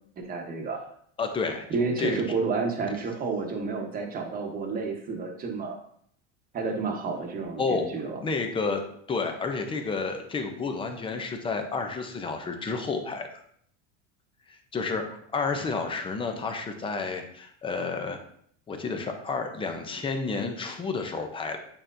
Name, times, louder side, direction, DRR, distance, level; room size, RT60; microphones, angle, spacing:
voice 1, 0.2-0.8 1.7-5.8 6.5-8.2, right 4 dB, 25° right, 2 dB, 1.0 m, -30 dB
voice 2, 1.2-1.6 2.0-2.2 7.6-7.9 8.2-8.8 9.1-13.4 14.7-18.2 18.7-21.6, left 4 dB, 15° left, 5 dB, 0.5 m, -30 dB
8.7 x 4.4 x 2.6 m, 0.65 s
cardioid pair, 160°, 37 cm